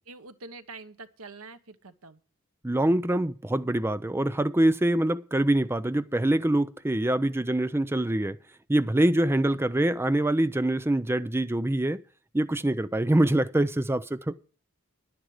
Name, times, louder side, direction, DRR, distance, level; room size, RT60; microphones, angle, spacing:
voice 1, 0.1-2.2 9.5-9.6, right 3 dB, 80° right, 1.2 m, -45 dB
voice 2, 2.6-8.4 8.7-12.0 12.3-14.3, right 1 dB, 10° right, 0.5 m, -24 dB
11.0 x 10.0 x 4.9 m
head